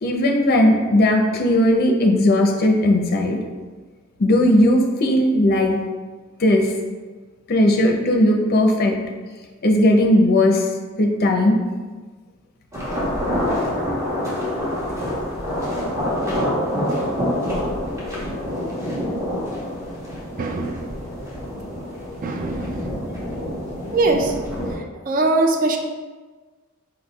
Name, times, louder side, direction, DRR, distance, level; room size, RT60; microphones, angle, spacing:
voice 1, 0.0-3.4 4.2-5.8 6.4-6.7 7.5-9.0 9.6-10.7 10.9-11.6, left 1 dB, 45° left, 3 dB, 0.5 m, -17 dB
sound 1, 12.7-24.7, equal, 15° right, 1.0 m, -26 dB
voice 2, 20.4-21.0 22.2-22.9 23.9-24.3 24.8-25.8, right 2 dB, 40° right, 4 dB, 0.4 m, -22 dB
4.9 x 4.2 x 2.3 m, 1.4 s
head